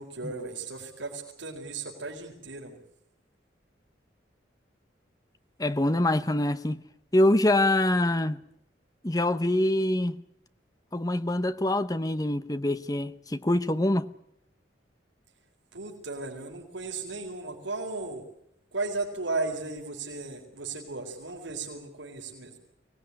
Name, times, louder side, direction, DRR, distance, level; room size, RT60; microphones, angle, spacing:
voice 1, 0.0-2.8 15.7-18.2 18.7-22.5, right 3 dB, 85° right, 4.5 m, -35 dB
voice 2, 5.6-6.8 7.1-8.4 9.0-10.2 10.9-14.1, left 1 dB, 20° left, 0.9 m, -25 dB
24.0 x 18.5 x 9.8 m
head